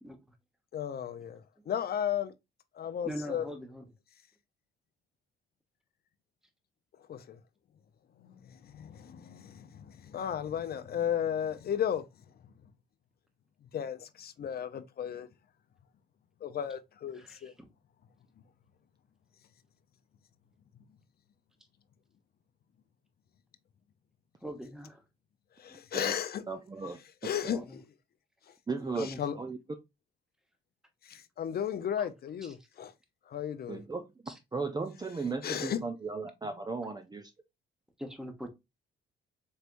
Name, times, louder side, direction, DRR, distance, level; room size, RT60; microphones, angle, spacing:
voice 1, 0.7-2.3 2.7-3.5 7.1-7.4 8.3-12.1 13.7-15.3 16.4-17.5 25.6-26.4 26.9-27.8 28.5-28.6 29.0-29.4 31.0-32.9 33.3-33.8 35.1-35.8, left 9 dB, 50° left, 0.6 m, -35 dB
voice 2, 3.0-3.8 17.1-17.7 24.4-25.0 25.7-25.8 26.8-26.9 27.5-27.8 28.8-29.2 32.0-32.1 32.4-32.5 34.3-34.4 38.0-38.5, equal, 5° right, 1.1 m, -42 dB
voice 3, 26.5-27.6 28.7-29.1 29.4-29.6 33.7-34.1 34.5-37.3, right 4 dB, 20° right, 0.5 m, -36 dB
4.4 x 3.3 x 2.5 m
cardioid pair, 90°, 20 cm